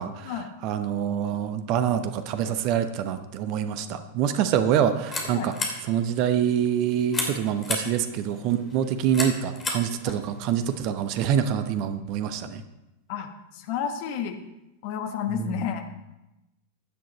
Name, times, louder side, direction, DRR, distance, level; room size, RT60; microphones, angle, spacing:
voice 1, 0.0-0.3 0.6-5.5 5.9-12.6 15.3-15.6, right 9 dB, 40° right, 9 dB, 1.0 m, -26 dB
sound 1, 4.6-10.8, left 3 dB, 20° left, 3.0 m, -35 dB
voice 2, 13.1-14.4 14.8-15.8, left 8 dB, 45° left, 6 dB, 1.5 m, -31 dB
16.0 x 10.5 x 4.2 m, 0.95 s
figure-of-eight pair, 90°, 0 cm